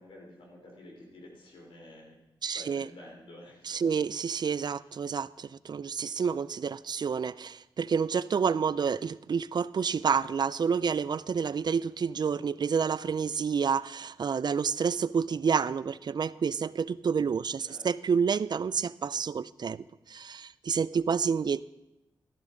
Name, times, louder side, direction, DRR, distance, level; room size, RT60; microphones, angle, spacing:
voice 1, 0.0-3.8 4.7-4.9 17.6-17.9, left 1 dB, 85° left, -1 dB, 3.4 m, -50 dB
voice 2, 2.4-2.9 3.7-21.6, right 6 dB, 55° right, 18 dB, 0.4 m, -29 dB
13.0 x 13.0 x 3.8 m, 0.93 s
cardioid pair, 55°, 9 cm